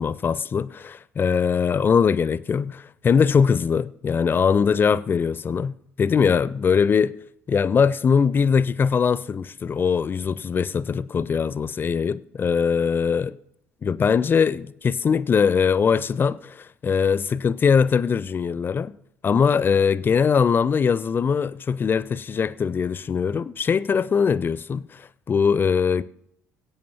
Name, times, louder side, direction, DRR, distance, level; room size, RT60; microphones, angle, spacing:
voice 1, 0.0-7.1 7.5-13.4 13.8-19.0 19.2-26.0, left 6 dB, 25° left, 0.4 m, -21 dB
20.0 x 8.6 x 2.9 m
figure-of-eight pair, 55°, 8 cm